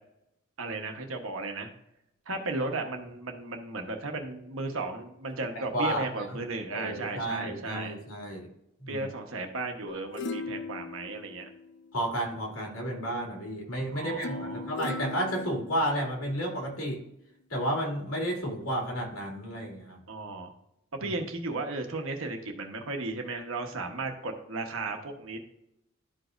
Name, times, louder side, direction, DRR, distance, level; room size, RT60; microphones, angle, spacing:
voice 1, 0.6-1.7 2.3-8.0 8.9-11.5 13.9-14.7 20.1-20.5 20.9-25.4, right 3 dB, 65° right, 3 dB, 1.1 m, -35 dB
voice 2, 5.7-6.4 6.7-8.5 8.8-9.1 11.9-17.0 17.5-20.0 21.0-21.1, right 1 dB, 80° left, -1 dB, 2.6 m, -32 dB
sound 1, 9.9-12.2 14.2-16.2 16.8-16.9, left 3 dB, 55° left, 0.6 m, -39 dB
12.0 x 5.0 x 2.6 m, 0.81 s
head